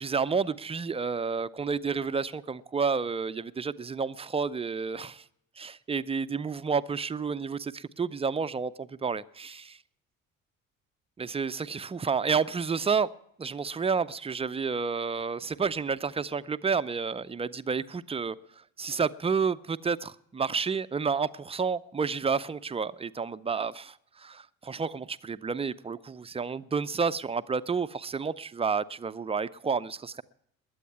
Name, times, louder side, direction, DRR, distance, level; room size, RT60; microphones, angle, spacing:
voice 1, 0.0-5.2 5.6-9.8 11.2-13.1 13.4-18.4 18.8-30.2, right 5 dB, 15° right, 0.5 m, -30 dB
21.0 x 8.5 x 7.0 m
figure-of-eight pair, 50°, 42 cm